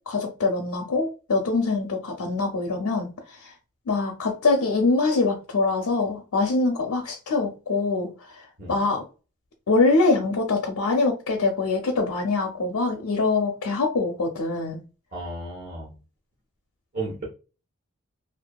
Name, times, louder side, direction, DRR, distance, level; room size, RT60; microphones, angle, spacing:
voice 1, 0.1-3.5 3.9-9.0 9.7-14.8, left 3 dB, 80° left, 0.5 m, -24 dB
voice 2, 15.1-15.9 16.9-17.2, right 2 dB, 45° right, 0.9 m, -33 dB
2.6 x 2.3 x 2.2 m
head